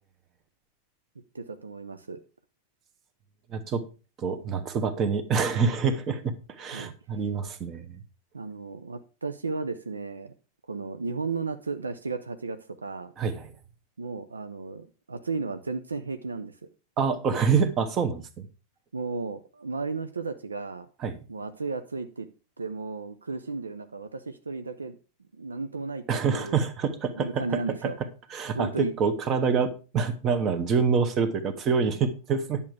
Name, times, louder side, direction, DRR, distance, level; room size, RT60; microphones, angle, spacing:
voice 1, 1.3-2.2 6.6-6.9 8.3-10.3 10.7-13.1 14.0-16.5 18.9-20.9 21.3-22.3 22.6-25.0 25.3-26.6 27.1-28.0 28.5-28.9, right 4 dB, 75° right, 0.7 m, -34 dB
voice 2, 3.5-3.8 4.2-8.0 13.2-13.5 17.0-18.5 21.0-21.2 26.1-27.9 28.3-32.6, right 5 dB, 30° right, 1.4 m, -26 dB
10.5 x 7.2 x 4.8 m
figure-of-eight pair, 90°, 0 cm